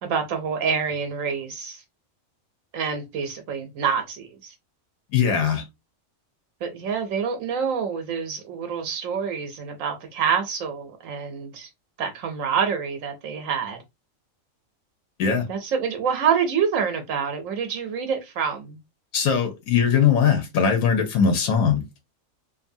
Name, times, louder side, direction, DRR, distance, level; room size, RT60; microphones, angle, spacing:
voice 1, 0.0-1.8 2.7-4.5 6.6-11.7 12.0-13.8 15.5-18.8, right 6 dB, 80° right, 1.0 m, -27 dB
voice 2, 5.1-5.6 15.2-15.4 19.1-21.8, left 7 dB, 90° left, 1.1 m, -20 dB
2.6 x 2.5 x 2.6 m
omnidirectional pair, 1.4 m